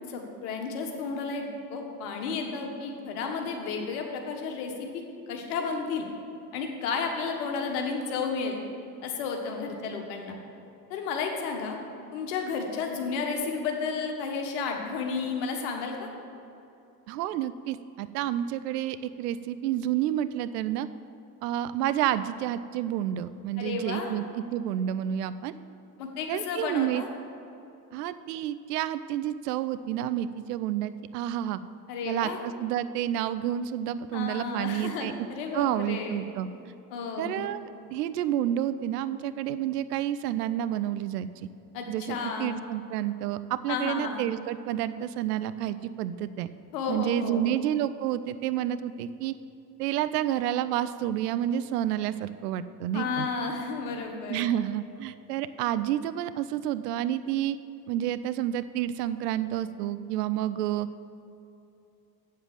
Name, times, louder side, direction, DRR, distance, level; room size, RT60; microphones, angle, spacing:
voice 1, 0.1-6.0 6.5-8.6 9.0-10.4 10.9-11.8 12.1-16.1 23.6-24.1 26.0-27.1 31.9-32.4 34.1-36.3 36.9-37.4 41.7-42.6 43.7-44.2 46.7-47.5 52.9-54.5, left 5 dB, 65° left, 3 dB, 1.6 m, -32 dB
voice 2, 17.1-20.9 21.4-25.5 26.3-27.0 27.9-31.6 32.1-35.3 35.5-36.5 37.2-41.5 41.9-46.5 46.9-49.3 49.8-53.3 54.3-57.6 57.9-60.9, right 11 dB, 70° right, 14 dB, 0.6 m, -29 dB
7.9 x 7.4 x 7.3 m, 2.8 s
figure-of-eight pair, 65°, 49 cm